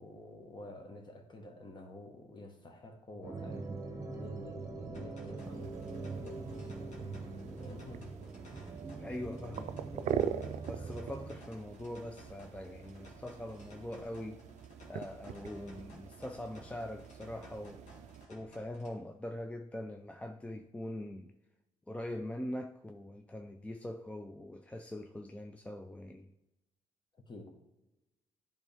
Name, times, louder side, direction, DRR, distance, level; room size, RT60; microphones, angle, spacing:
voice 1, 0.0-5.6 7.5-8.1 10.8-10.9 27.1-27.5, left 2 dB, 35° left, 1.4 m, -50 dB
sound 1, 3.2-11.3, right 3 dB, 25° right, 1.1 m, -43 dB
sound 2, 4.9-19.0, left 1 dB, 70° left, 1.9 m, -57 dB
sound 3, 5.4-18.2, right 9 dB, 60° right, 0.4 m, -43 dB
voice 2, 8.9-14.4 14.9-17.8 18.3-21.3 21.9-26.3, left 1 dB, 10° left, 0.4 m, -43 dB
10.0 x 3.6 x 3.4 m
cardioid pair, 80°, 13 cm